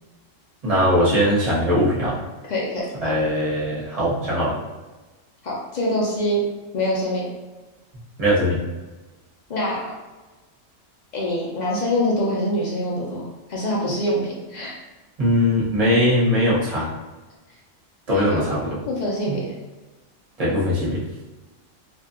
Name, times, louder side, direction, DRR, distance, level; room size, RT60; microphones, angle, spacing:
voice 1, 0.6-2.2 3.0-4.6 8.2-8.6 15.2-16.9 18.1-18.8 19.3-19.4 20.4-21.0, equal, 35° right, -6 dB, 0.7 m, -20 dB
voice 2, 2.5-2.8 5.4-6.4 6.7-7.3 9.5-9.9 11.1-14.8 18.1-18.4 18.9-19.5, left 1 dB, 60° left, -4 dB, 0.4 m, -25 dB
2.6 x 2.3 x 2.4 m, 1.2 s
omnidirectional pair, 1.4 m